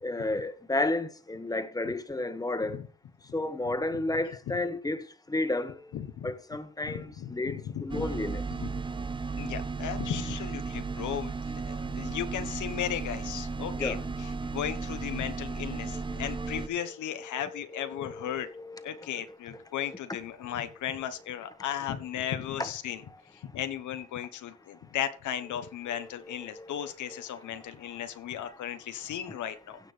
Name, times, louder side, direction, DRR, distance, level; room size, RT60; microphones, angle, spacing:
voice 1, 0.0-2.8 3.3-5.8 6.2-8.4 13.8-14.0 16.1-16.7 17.3-19.6 25.9-27.2, left 2 dB, 10° left, 1.3 m, -33 dB
voice 2, 3.6-4.0 4.5-4.6 5.9-6.3 6.8-8.1 8.5-8.8 9.4-11.4 11.7-18.5 18.8-23.0 23.3-29.8, left 10 dB, 75° left, 1.2 m, -36 dB
sound 1, 7.9-16.7, right 4 dB, 15° right, 0.6 m, -35 dB
16.0 x 6.1 x 3.4 m
cardioid pair, 90°, 30 cm